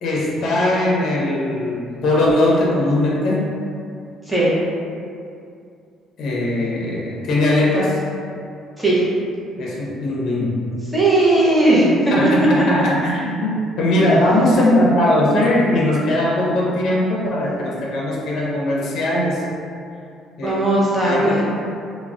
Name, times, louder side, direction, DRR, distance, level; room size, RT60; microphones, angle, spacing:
voice 1, 0.0-3.5 6.2-8.0 9.6-10.6 12.1-19.4 20.4-20.5 21.0-21.4, left 1 dB, 50° left, -4 dB, 0.6 m, -19 dB
voice 2, 10.9-11.9 12.2-12.3 20.4-21.4, right 2 dB, 5° right, -8 dB, 0.6 m, -16 dB
2.3 x 2.0 x 3.6 m, 2.4 s
cardioid pair, 160°, 0 cm